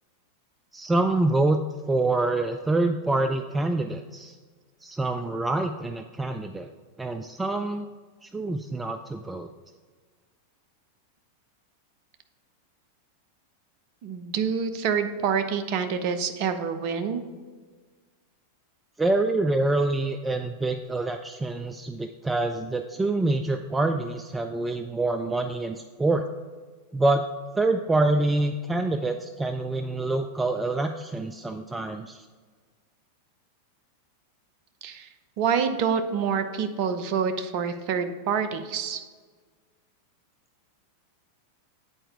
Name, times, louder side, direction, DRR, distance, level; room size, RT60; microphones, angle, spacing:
voice 1, 0.7-1.6 1.9-4.4 4.8-6.7 7.0-7.9 8.2-9.5 19.0-26.2 26.9-27.2 27.5-32.3, right 2 dB, 10° right, 7 dB, 0.3 m, -26 dB
voice 2, 14.0-17.2 34.8-35.1 35.4-39.0, right 6 dB, 45° right, 9 dB, 0.6 m, -27 dB
8.8 x 4.4 x 4.8 m, 1.5 s
figure-of-eight pair, 90°, 0 cm